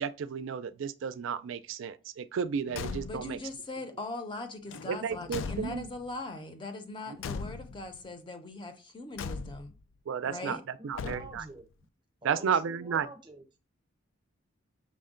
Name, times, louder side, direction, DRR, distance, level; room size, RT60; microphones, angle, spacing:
voice 1, 0.0-3.4 4.9-5.9 7.1-7.2 10.1-11.4 12.2-13.1, right 7 dB, 65° right, 0.3 m, -33 dB
Car / Truck / Slam, 2.7-3.4 4.7-6.1 7.2-8.0 9.2-9.8 10.9-11.6, left 5 dB, 70° left, 0.3 m, -39 dB
voice 2, 3.1-9.7 10.2-10.6, left 2 dB, 25° left, 0.6 m, -40 dB
voice 3, 10.3-11.6 12.2-13.4, right 2 dB, 25° right, 0.7 m, -47 dB
6.1 x 2.1 x 3.7 m
head